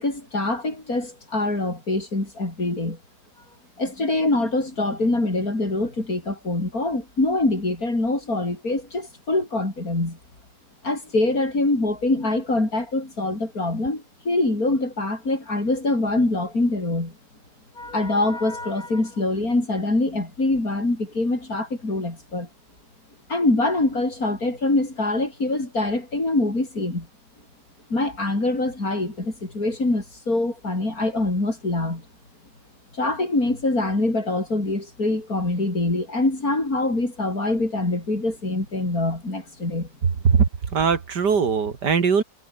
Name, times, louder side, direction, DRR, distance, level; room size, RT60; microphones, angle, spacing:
voice 1, 0.0-3.0 3.8-10.2 10.8-17.1 17.8-22.5 23.3-27.1 27.9-32.0 33.0-39.9, left 2 dB, 55° left, 6.4 m, -24 dB
voice 2, 40.7-42.2, right 6 dB, 70° right, 2.6 m, -20 dB
omnidirectional pair, 1.9 m